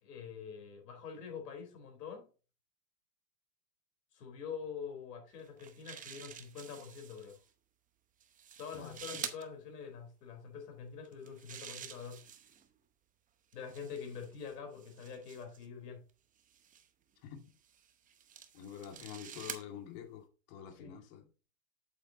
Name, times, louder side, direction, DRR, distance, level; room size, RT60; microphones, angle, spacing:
voice 1, 0.0-2.2 4.1-7.4 8.6-12.2 13.5-16.0 20.8-20.9, left 6 dB, 85° left, 4.1 m, -45 dB
sound 1, 5.4-7.4 8.2-9.4 11.0-12.7 13.5-15.7 16.5-16.9 17.6-19.7, right 8 dB, 15° right, 0.8 m, -48 dB
voice 2, 8.7-9.2 17.2-17.4 18.5-21.3, left 9 dB, 50° left, 2.2 m, -47 dB
8.3 x 8.0 x 2.8 m
supercardioid pair, 135°, 47 cm